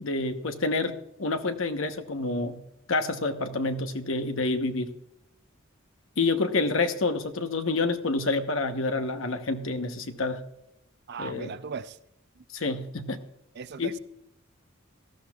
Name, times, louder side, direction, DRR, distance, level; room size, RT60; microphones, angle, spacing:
voice 1, 0.0-2.6 2.9-4.9 6.2-10.4 11.2-11.5 12.5-13.2 13.8-13.9, left 3 dB, 65° left, 1.0 m, -28 dB
voice 2, 11.1-12.0 13.6-14.0, right 5 dB, 55° right, 0.5 m, -37 dB
18.0 x 13.0 x 2.4 m
head